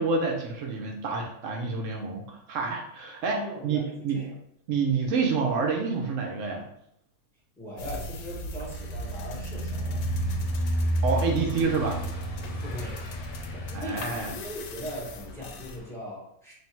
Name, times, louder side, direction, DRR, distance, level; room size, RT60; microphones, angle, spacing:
voice 1, 0.0-4.2 4.7-6.6 11.0-12.0 13.7-14.3, right 4 dB, 85° right, 1 dB, 0.6 m, -28 dB
voice 2, 3.2-4.3 7.6-10.1 12.6-13.0 13.5-16.5, equal, 5° left, -6 dB, 0.3 m, -39 dB
sound 1, 7.8-15.8, right 1 dB, 75° left, 1.0 m, -32 dB
Car passing by / Engine, 9.2-15.9, left 1 dB, 55° left, 0.9 m, -47 dB
3.3 x 2.6 x 4.4 m, 0.75 s
omnidirectional pair, 2.1 m